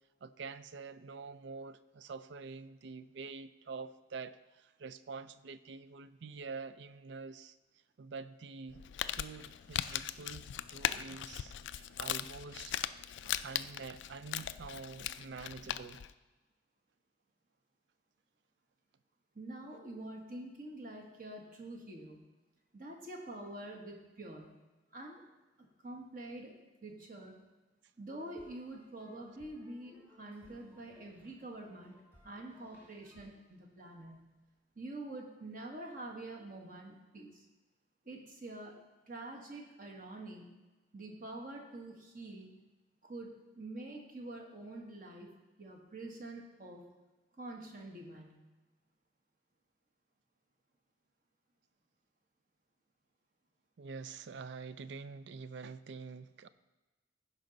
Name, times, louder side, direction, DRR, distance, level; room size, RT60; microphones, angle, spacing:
voice 1, 0.2-7.6 8.0-8.8 9.1-12.8 13.2-16.0 53.8-56.5, right 4 dB, 65° right, 0.4 m, -46 dB
Crumpling crinkling, 8.7-16.1, left 11 dB, 70° left, 0.3 m, -39 dB
voice 2, 19.3-22.2 22.7-24.5 24.9-25.2 25.6-26.5 26.8-27.4 28.0-32.0 32.2-34.3 34.7-37.5 38.0-38.8 39.1-40.5 40.9-42.5 43.0-45.3 45.6-46.8 47.4-48.3, right 2 dB, 45° right, 1.4 m, -46 dB
sound 1, 28.2-34.5, equal, 10° right, 1.7 m, -65 dB
15.5 x 5.2 x 3.9 m
head